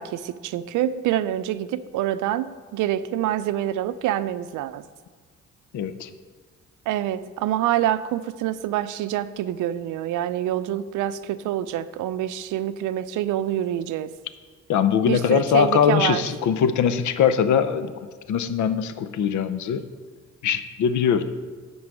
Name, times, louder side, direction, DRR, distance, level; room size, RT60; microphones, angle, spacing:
voice 1, 0.0-4.8 6.9-14.1 15.1-16.2, right 12 dB, 85° right, 14 dB, 0.5 m, -26 dB
voice 2, 5.7-6.1 14.7-19.9 20.4-21.2, left 8 dB, 70° left, 11 dB, 0.7 m, -22 dB
11.0 x 4.0 x 7.6 m, 1.5 s
cardioid pair, 90°, 30 cm